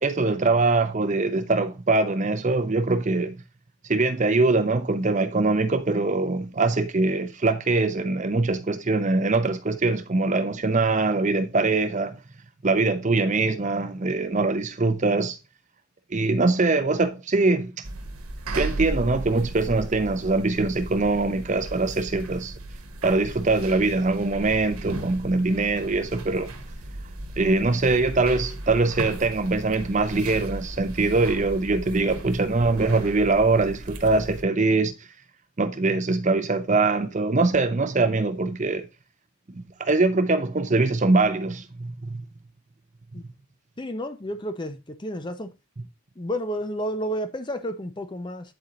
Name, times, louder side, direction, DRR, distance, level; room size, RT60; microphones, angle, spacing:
voice 1, 0.0-3.3 3.9-12.2 12.6-15.4 16.1-17.7 18.6-22.5 23.0-26.5 27.4-34.9 35.6-38.8 39.5-42.2, right 3 dB, 35° right, 0.6 m, -23 dB
sound 1, 17.8-34.4, right 1 dB, 75° right, 1.2 m, -36 dB
voice 2, 43.8-45.5 46.2-48.5, equal, 20° left, 0.5 m, -31 dB
8.8 x 4.4 x 3.8 m
head